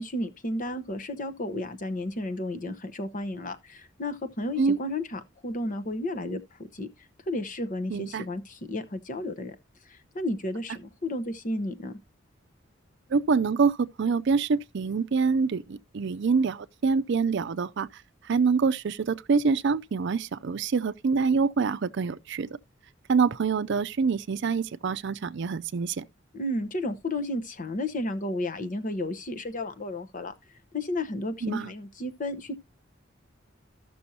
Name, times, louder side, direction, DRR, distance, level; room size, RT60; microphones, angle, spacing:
voice 1, 0.0-6.4 6.7-6.9 7.3-9.5 9.9-12.0 26.3-30.3 30.7-32.5, left 1 dB, 45° left, 0.9 m, -32 dB
voice 2, 7.9-8.2 13.1-22.5 23.1-26.0 31.4-31.7, right 5 dB, 60° right, 0.5 m, -26 dB
14.5 x 6.1 x 2.7 m
head